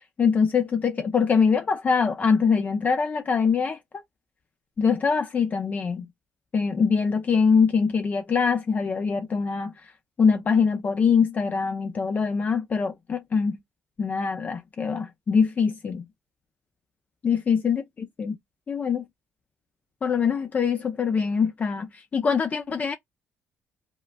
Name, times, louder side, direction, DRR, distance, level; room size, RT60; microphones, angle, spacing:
voice 1, 0.2-3.8 4.8-6.1 6.5-9.7 10.2-13.6 14.0-16.0 17.2-17.8 18.2-18.4 18.7-19.0 20.0-22.9, left 5 dB, 35° left, 0.6 m, -23 dB
5.0 x 2.1 x 2.2 m
cardioid pair, 85°, 5 cm